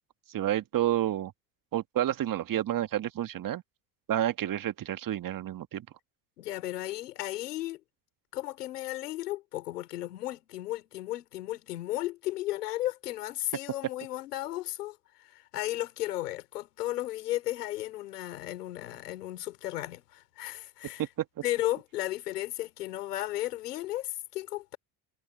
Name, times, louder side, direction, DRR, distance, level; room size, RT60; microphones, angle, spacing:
voice 1, 0.3-1.3 1.7-3.6 4.1-5.9 21.0-21.3, right 12 dB, 45° right, 1.7 m, -30 dB
voice 2, 6.4-7.8 8.3-21.1 21.4-24.8, left 15 dB, 85° left, 3.2 m, -34 dB
hypercardioid pair, 70°, 46 cm